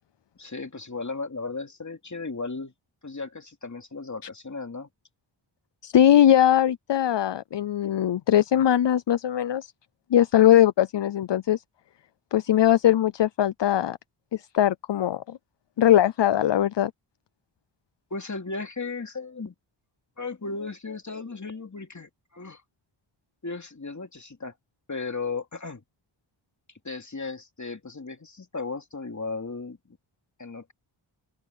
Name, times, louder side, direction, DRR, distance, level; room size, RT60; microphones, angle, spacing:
voice 1, 0.4-2.7 3.0-4.9 18.1-19.5 20.2-22.6 23.4-24.5 24.9-25.8 26.8-29.8 30.4-30.7, left 4 dB, 35° left, 2.8 m, -35 dB
voice 2, 5.8-9.7 10.1-11.6 12.3-14.0 14.3-15.4 15.8-16.9, left 11 dB, 65° left, 0.6 m, -20 dB
open air
wide cardioid pair, 100°, 47 cm